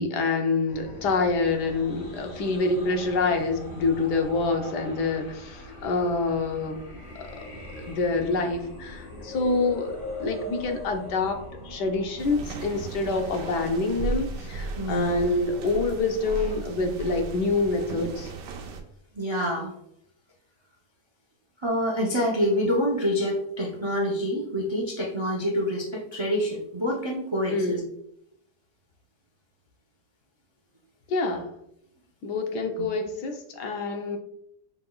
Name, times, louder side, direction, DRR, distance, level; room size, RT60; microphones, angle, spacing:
voice 1, 0.0-6.8 7.1-7.4 7.8-11.4 11.6-18.3 27.5-27.8 31.1-31.5 32.2-34.2, left 3 dB, 80° left, 4 dB, 1.3 m, -26 dB
sound 1, 0.7-13.5, left 1 dB, 50° left, 1.3 m, -41 dB
sound 2, 12.2-18.8, right 4 dB, 90° right, 1.3 m, -35 dB
voice 2, 14.8-15.2 19.1-19.7 21.6-27.8, equal, 45° right, -2 dB, 0.3 m, -27 dB
5.6 x 3.9 x 2.3 m, 0.75 s
omnidirectional pair, 1.8 m